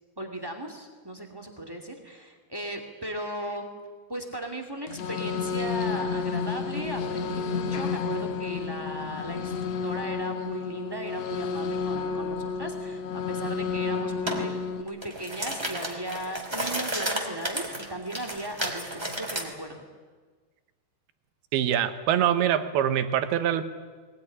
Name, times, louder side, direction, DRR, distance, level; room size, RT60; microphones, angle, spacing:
voice 1, 0.2-3.7 4.1-14.5 14.8-19.8, right 1 dB, 25° right, 4 dB, 0.5 m, -37 dB
sound 1, 4.9-14.8, left 5 dB, 80° left, 1.4 m, -31 dB
sound 2, 14.3-14.4 14.9-19.5, right 1 dB, 10° right, 2.0 m, -32 dB
voice 2, 21.5-23.6, right 10 dB, 70° right, 11 dB, 2.9 m, -24 dB
20.5 x 20.0 x 10.0 m, 1.5 s
omnidirectional pair, 5.0 m